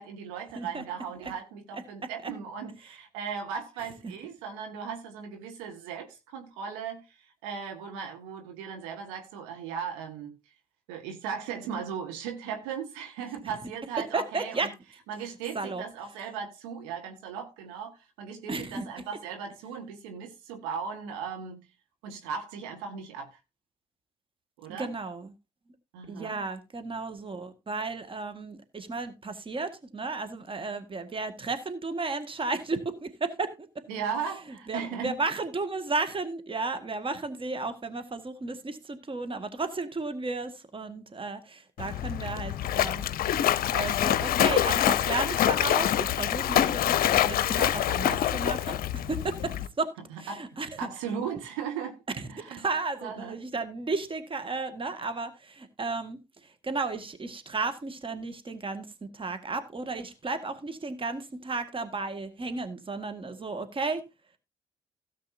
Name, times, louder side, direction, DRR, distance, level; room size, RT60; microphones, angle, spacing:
voice 1, 0.0-10.3 10.9-14.7 15.1-21.7 22.0-23.3 24.6-24.9 25.9-26.4 33.9-35.2 50.1-50.5 50.8-52.0 52.3-52.7 53.0-53.4, right 7 dB, 70° right, 1.7 m, -37 dB
voice 2, 14.1-14.7 15.5-15.8 18.5-18.8 24.7-25.3 26.1-33.7 34.7-43.1 43.7-50.9 52.2-58.9 59.1-64.0, right 3 dB, 30° right, 1.8 m, -34 dB
Splash splatter, 41.8-49.7, left 12 dB, 50° left, 0.7 m, -26 dB
16.5 x 7.6 x 2.7 m
figure-of-eight pair, 45°, 19 cm